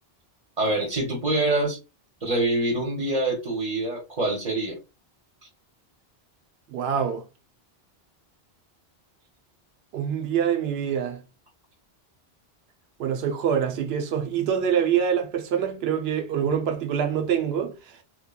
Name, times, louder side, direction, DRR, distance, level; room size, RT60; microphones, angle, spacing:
voice 1, 0.6-1.8 2.2-4.8, right 2 dB, 40° right, 0.8 m, -25 dB
voice 2, 6.7-7.2 9.9-11.2 13.0-17.7, right 8 dB, 80° right, 0.8 m, -25 dB
3.1 x 2.2 x 2.2 m
omnidirectional pair, 1.1 m